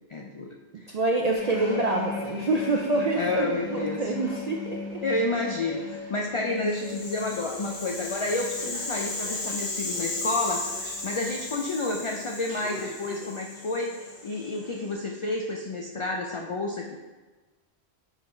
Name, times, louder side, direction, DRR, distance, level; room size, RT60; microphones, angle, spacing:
voice 1, 0.1-0.5 3.2-4.0 5.0-10.6 11.0-13.9 14.2-17.0, left 2 dB, 55° left, 1 dB, 0.3 m, -30 dB
voice 2, 0.9-5.0, right 2 dB, 55° right, 1 dB, 0.5 m, -26 dB
sound 1, 1.3-14.9 15.2-15.5, left 4 dB, 10° left, 1.2 m, -41 dB
sound 2, 1.3-14.9, equal, 85° right, 1.9 m, -48 dB
Rattle (instrument), 6.6-14.8, left 2 dB, 70° left, 1.4 m, -35 dB
5.8 x 3.8 x 4.3 m, 1.2 s
omnidirectional pair, 1.1 m